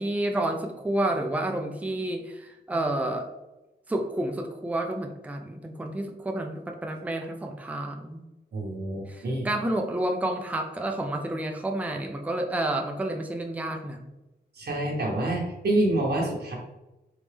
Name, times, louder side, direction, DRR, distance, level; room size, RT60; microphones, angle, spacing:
voice 1, 0.0-3.3 3.9-8.2 9.1-14.0, right 1 dB, 10° right, 2 dB, 0.4 m, -30 dB
voice 2, 8.5-9.5 14.6-16.6, right 1 dB, 70° right, -2 dB, 1.0 m, -27 dB
4.0 x 3.4 x 3.3 m, 1.0 s
wide cardioid pair, 160°, 18 cm